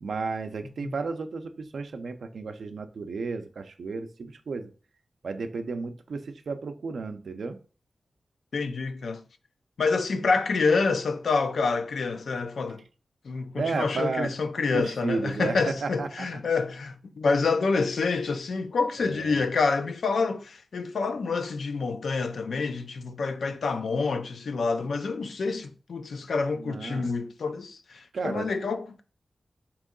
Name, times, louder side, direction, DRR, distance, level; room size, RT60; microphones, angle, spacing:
voice 1, 0.0-4.7 5.2-7.6 13.5-14.3 14.7-16.3 19.0-19.4 26.6-27.1 28.1-28.5, right 4 dB, 85° right, 0.4 m, -33 dB
voice 2, 8.5-9.2 9.8-12.8 13.2-29.0, left 4 dB, 90° left, 0.4 m, -27 dB
3.6 x 3.0 x 3.7 m
wide cardioid pair, 75°, 0 cm